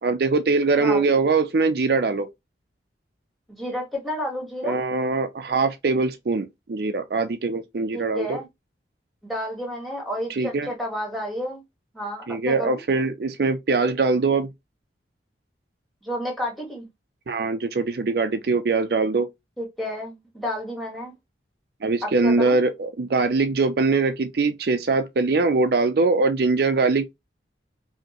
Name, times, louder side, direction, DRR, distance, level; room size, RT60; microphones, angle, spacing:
voice 1, 0.0-2.3 4.6-8.4 10.3-10.7 12.3-14.5 17.3-19.3 21.8-27.1, right 3 dB, 60° right, 0.4 m, -22 dB
voice 2, 3.5-4.8 7.9-8.5 9.3-11.6 11.9-12.8 16.0-16.8 19.6-21.1 22.0-22.6, equal, ahead, 1.7 m, -31 dB
5.0 x 2.8 x 2.9 m
head